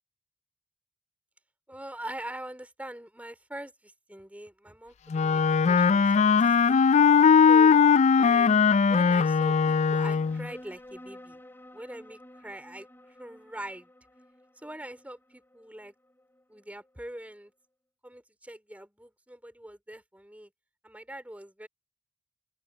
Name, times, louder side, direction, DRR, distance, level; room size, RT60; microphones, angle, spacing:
voice 1, 1.7-6.8 7.5-7.8 8.1-11.4 11.7-13.9 14.6-15.9 16.5-17.5 18.0-20.5 20.8-21.7, right 1 dB, 10° right, 3.5 m, -43 dB
Wind instrument woodwind instrument, 5.1-10.5, left 6 dB, 35° left, 0.3 m, -20 dB
sound 1, 10.0-17.0, left 1 dB, 10° left, 2.9 m, -52 dB
open air
head